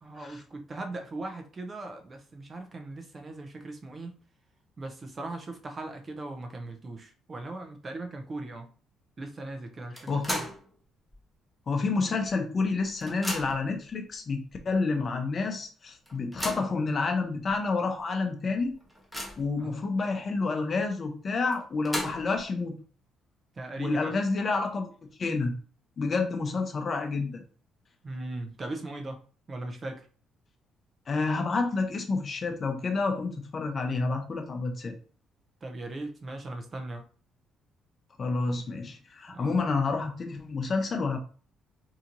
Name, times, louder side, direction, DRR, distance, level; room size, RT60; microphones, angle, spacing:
voice 1, 0.0-4.1 4.8-8.7 9.2-10.5 19.6-19.8 23.6-24.1 28.0-29.2 29.5-30.1 35.6-37.0 39.3-39.6, right 2 dB, 30° right, 4 dB, 0.6 m, -39 dB
sound 1, 10.0-10.7 11.1-11.2 12.2-12.3 12.6-13.7 14.5-14.6 15.0-15.1 16.1-16.8 17.5-17.6 18.0-18.1 18.5-19.6 21.5-22.4, equal, ahead, 1.0 m, -36 dB
voice 2, 10.1-10.4 11.7-18.8 19.4-22.7 23.8-24.9 25.2-25.5 26.0-27.4 31.1-34.9 38.2-41.2, left 3 dB, 40° left, 5 dB, 0.7 m, -29 dB
4.2 x 2.8 x 2.6 m, 0.41 s
cardioid pair, 105°, 0 cm